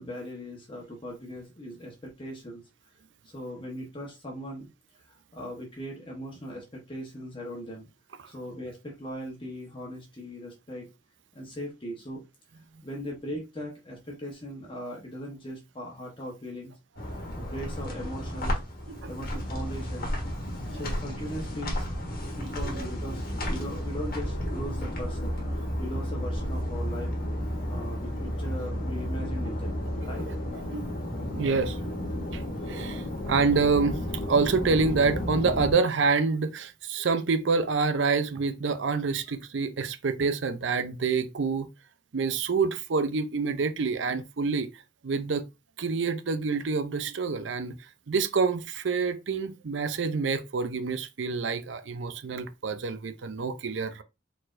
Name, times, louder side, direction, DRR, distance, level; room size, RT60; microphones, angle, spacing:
voice 1, 0.0-2.6 3.2-4.7 5.0-7.9 8.3-10.9 11.3-12.2 12.8-16.7 17.3-18.6 19.0-20.1 20.7-21.9 22.4-25.4 25.8-27.1 27.7-29.8 30.0-30.2, equal, 25° left, 1.1 m, -39 dB
sound 1, 17.0-35.7, equal, 50° left, 1.4 m, -32 dB
voice 2, 22.4-22.9 30.2-30.3 30.7-30.9 31.4-31.8 32.3-41.7 42.1-45.4 45.8-47.8 48.1-54.0, right 4 dB, 65° right, 0.5 m, -27 dB
4.3 x 4.2 x 2.5 m
head